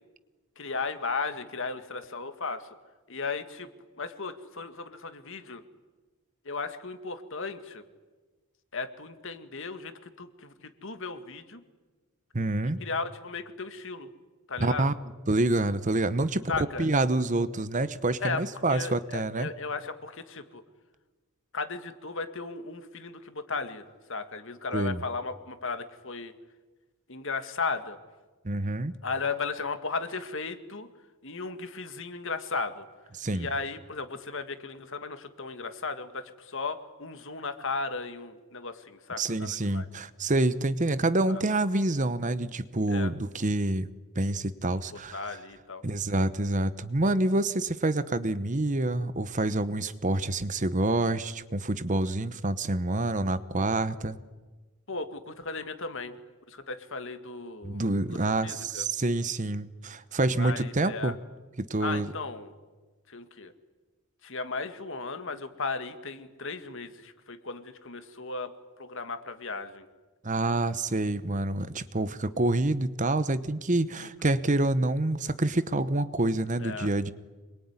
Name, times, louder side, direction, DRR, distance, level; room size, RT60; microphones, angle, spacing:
voice 1, 0.6-2.8 3.1-3.7 4.0-5.6 6.4-7.8 8.7-11.6 12.8-14.1 14.5-15.0 16.5-16.9 18.2-20.6 21.5-26.3 27.1-28.0 29.0-30.9 31.2-32.9 33.3-39.9 41.3-41.4 42.9-43.1 44.9-45.8 54.9-56.2 56.5-57.8 58.1-58.9 60.3-61.1 61.8-62.5 63.1-63.5 64.2-69.9 74.0-74.1 76.6-76.9, left 4 dB, 60° left, 9 dB, 2.1 m, -36 dB
voice 2, 12.3-12.8 14.6-14.9 15.3-16.5 16.8-19.5 24.7-25.0 28.4-28.9 33.2-33.5 39.2-43.9 44.1-45.2 45.8-54.2 57.6-61.1 61.6-62.1 70.2-77.1, right 2 dB, 35° right, 14 dB, 1.0 m, -27 dB
26.5 x 22.5 x 9.7 m, 1.3 s
head